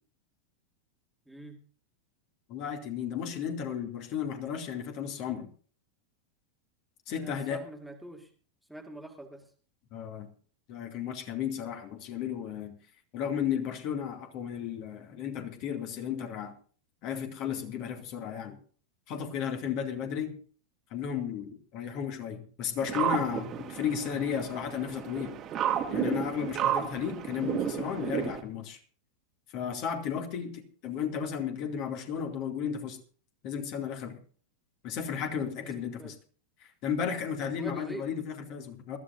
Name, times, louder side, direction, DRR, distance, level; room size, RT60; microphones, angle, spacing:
voice 1, 1.3-1.6 7.1-8.3 8.7-9.5 30.3-30.5 35.6-36.2 37.6-38.1, right 1 dB, ahead, 3 dB, 2.3 m, -44 dB
voice 2, 2.5-5.5 7.1-7.6 9.9-10.3 10.7-12.8 13.1-16.5 17.0-18.6 19.1-20.3 20.9-25.4 25.7-28.8 29.5-33.0 33.4-34.2 34.8-36.1 36.6-39.0, left 8 dB, 40° left, 4 dB, 2.4 m, -34 dB
sound 1, 22.8-28.4, right 9 dB, 30° right, 1.8 m, -32 dB
22.0 x 14.0 x 2.7 m, 0.43 s
figure-of-eight pair, 90°, 0 cm